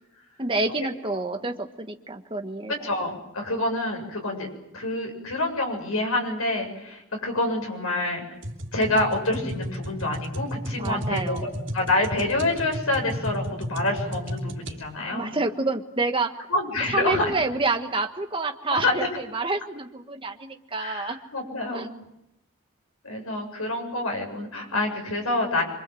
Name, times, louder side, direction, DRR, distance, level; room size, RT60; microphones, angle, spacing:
voice 1, 0.4-2.7 10.8-11.5 15.1-16.4 16.9-21.2 21.7-21.9, right 3 dB, 25° right, 6 dB, 1.4 m, -28 dB
voice 2, 2.8-4.5 4.7-8.2 8.7-15.4 16.5-17.3 18.7-18.9 20.8-21.9 23.0-25.6, left 2 dB, 75° left, 2 dB, 7.5 m, -27 dB
sound 1, 8.4-14.8, equal, 55° right, 3.2 m, -33 dB
26.5 x 24.5 x 7.8 m, 0.88 s
head